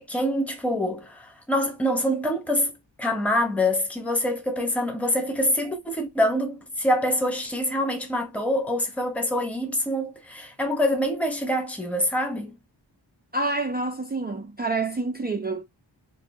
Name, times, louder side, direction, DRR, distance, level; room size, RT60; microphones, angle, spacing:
voice 1, 0.0-2.7 3.0-12.5, left 1 dB, 5° left, 0.9 m, -25 dB
voice 2, 13.3-15.6, right 3 dB, 20° right, 0.4 m, -27 dB
2.6 x 2.4 x 3.5 m
wide cardioid pair, 55°, 46 cm